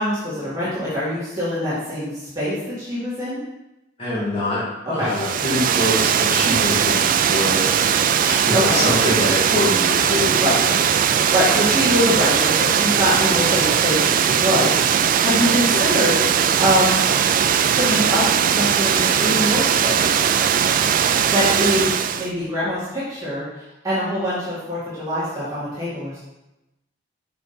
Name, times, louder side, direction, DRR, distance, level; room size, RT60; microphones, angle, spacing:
voice 1, 0.0-3.4 4.8-5.1 8.5-8.8 10.4-10.6 11.1-17.0 17.7-20.1 21.3-26.2, equal, 20° right, -11 dB, 2.2 m, -24 dB
voice 2, 4.0-4.6 4.9-7.6 8.2-10.8, left 1 dB, 30° left, -11 dB, 2.1 m, -24 dB
Water, 5.1-22.3, right 8 dB, 45° right, 0.4 m, -19 dB
6.1 x 5.9 x 4.3 m, 0.97 s
head